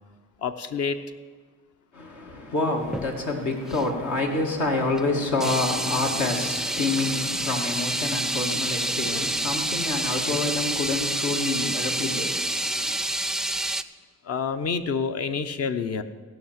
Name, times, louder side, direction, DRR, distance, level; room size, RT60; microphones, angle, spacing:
voice 1, 0.4-1.0 14.2-16.0, left 5 dB, 55° left, 0.9 m, -27 dB
voice 2, 1.9-13.0, left 2 dB, 75° left, 2.2 m, -28 dB
sound 1, 2.8-3.1 3.7-3.9 5.0-5.1 5.4-13.8, right 1 dB, ahead, 0.4 m, -28 dB
16.5 x 5.8 x 7.4 m
cardioid pair, 90°, 30 cm